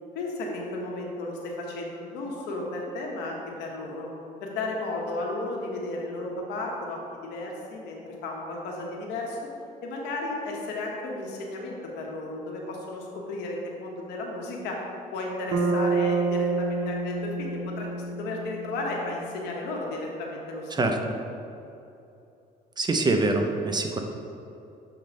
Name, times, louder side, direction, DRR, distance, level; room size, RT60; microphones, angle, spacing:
voice 1, 0.1-4.1 4.4-9.4 9.8-14.8 15.1-20.7, left 2 dB, 85° left, -1 dB, 1.2 m, -34 dB
Bass guitar, 15.5-19.6, right 3 dB, 55° right, 1.0 m, -28 dB
voice 2, 20.7-21.2 22.8-24.0, right 2 dB, 25° right, 4 dB, 0.6 m, -25 dB
7.1 x 3.1 x 5.1 m, 2.8 s
cardioid pair, 110°, 17 cm